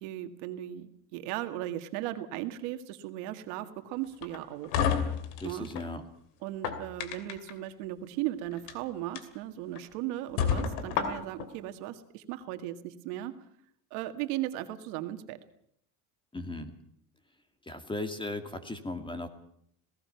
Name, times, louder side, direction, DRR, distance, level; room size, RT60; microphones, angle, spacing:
voice 1, 0.0-4.8 5.4-5.7 6.4-13.3 13.9-15.4, right 14 dB, 85° right, 8 dB, 2.0 m, -37 dB
sound 1, 4.2-5.9 6.4-7.5 8.5-8.7 9.2-9.3 9.8-9.9 10.4-11.5, left 7 dB, 90° left, 2.9 m, -30 dB
voice 2, 5.4-6.0 16.3-16.8 17.6-19.3, left 2 dB, 10° left, 8 dB, 2.2 m, -37 dB
27.5 x 18.0 x 5.8 m, 0.68 s
cardioid pair, 130°, 44 cm